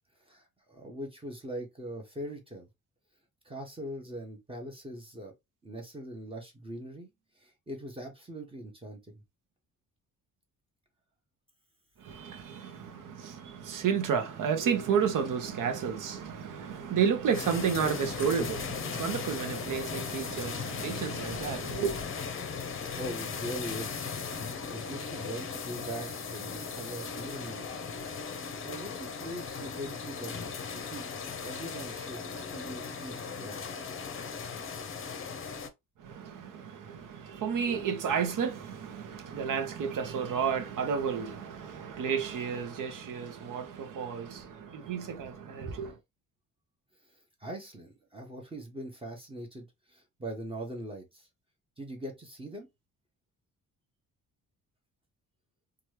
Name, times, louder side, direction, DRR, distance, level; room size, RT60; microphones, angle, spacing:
voice 1, 0.2-2.7 3.4-5.3 5.6-7.1 7.4-9.1 22.6-24.2 24.7-27.7 28.6-30.3 30.7-31.1 31.4-33.9 47.4-51.3 51.8-52.7, right 1 dB, 15° right, 0.8 m, -41 dB
voice 2, 12.0-22.0 36.0-46.0, right 7 dB, 70° right, 0.8 m, -32 dB
sound 1, 17.3-35.7, left 5 dB, 40° left, 0.6 m, -37 dB
2.9 x 2.3 x 3.2 m
cardioid pair, 135°, 33 cm